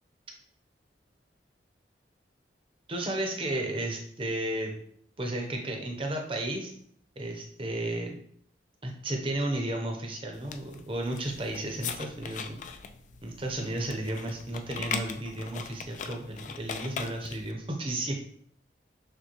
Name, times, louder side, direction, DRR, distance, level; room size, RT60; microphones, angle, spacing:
voice 1, 2.9-4.7 5.2-6.7 7.2-8.2 8.8-12.6 13.2-18.1, right 1 dB, 30° right, 2 dB, 0.7 m, -33 dB
sound 1, 10.3-17.5, left 6 dB, 45° left, 0.3 m, -40 dB
6.5 x 2.2 x 3.0 m, 0.62 s
head